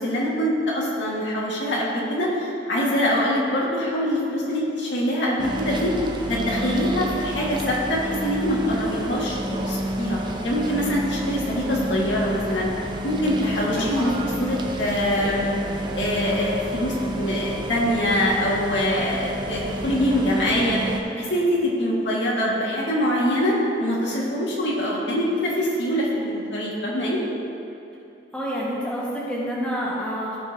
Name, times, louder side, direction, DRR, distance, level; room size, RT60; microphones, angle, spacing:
voice 1, 0.0-10.2 10.4-12.7 13.0-14.1 14.4-15.5 16.0-27.2, equal, 85° left, -5 dB, 1.9 m, -24 dB
sound 1, 5.4-21.0, right 1 dB, 25° right, 0.6 m, -30 dB
voice 2, 28.3-30.4, equal, 5° left, -7 dB, 1.5 m, -28 dB
15.0 x 5.7 x 2.8 m, 2.8 s
head